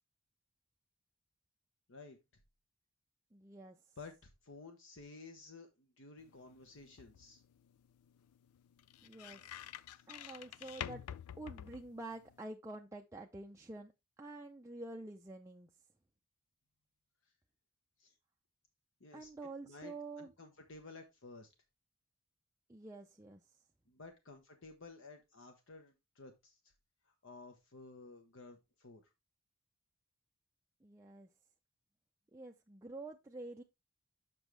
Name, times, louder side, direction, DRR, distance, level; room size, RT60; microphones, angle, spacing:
voice 1, 3.3-3.8 9.0-9.4 10.1-11.0 11.4-13.9 14.2-15.7 19.1-20.3 22.7-23.4 30.8-31.3 32.3-33.6, right 2 dB, 15° right, 0.5 m, -48 dB
voice 2, 4.0-7.4 9.9-10.0 18.0-18.1 19.0-19.3 19.6-21.5 23.9-26.6 27.1-29.0, left 3 dB, 60° left, 1.0 m, -54 dB
sound 1, 6.2-12.4, left 10 dB, 90° left, 0.4 m, -50 dB
7.2 x 6.0 x 3.2 m
head